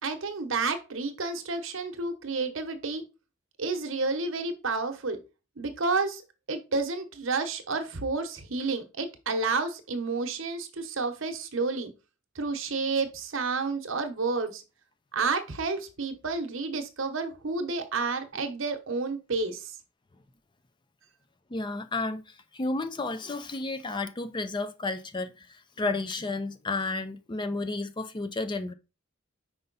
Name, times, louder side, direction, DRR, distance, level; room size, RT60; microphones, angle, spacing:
voice 1, 0.0-3.0 3.6-5.2 5.6-6.2 6.5-11.9 12.3-14.6 15.1-19.7, right 4 dB, 65° right, 1.0 m, -30 dB
voice 2, 21.5-22.2 22.5-25.5 25.8-28.7, left 3 dB, 20° left, 0.5 m, -32 dB
5.4 x 4.5 x 3.9 m
head